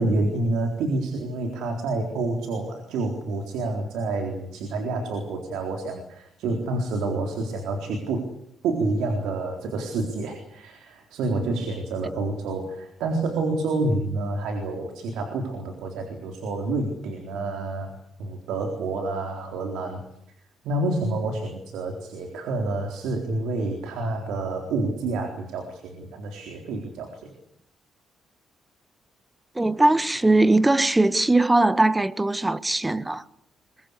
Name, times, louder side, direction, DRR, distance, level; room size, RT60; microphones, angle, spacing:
voice 1, 0.0-8.3 8.6-20.1 20.6-27.3, right 2 dB, 85° right, 4.0 m, -28 dB
voice 2, 29.5-33.2, right 2 dB, 15° right, 1.3 m, -20 dB
23.0 x 22.0 x 8.4 m
cardioid pair, 90°, 0 cm